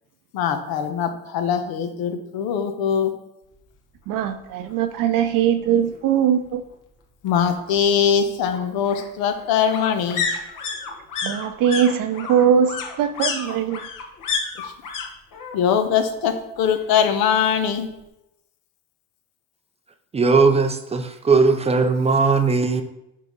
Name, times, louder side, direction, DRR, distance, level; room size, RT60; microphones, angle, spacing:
voice 1, 0.3-3.1 7.2-10.3 15.5-17.9, left 7 dB, 80° left, 1.0 m, -22 dB
voice 2, 4.1-6.6 11.2-13.8, right 8 dB, 65° right, 0.8 m, -21 dB
sound 1, 4.2-4.3 4.6-4.7 5.0-6.0 7.3-15.1 15.3-15.9 16.2-17.2 17.5-17.6, left 5 dB, 60° left, 1.4 m, -31 dB
voice 3, 20.1-22.8, right 4 dB, 20° right, 0.5 m, -18 dB
5.5 x 4.8 x 5.4 m
cardioid pair, 135°, 36 cm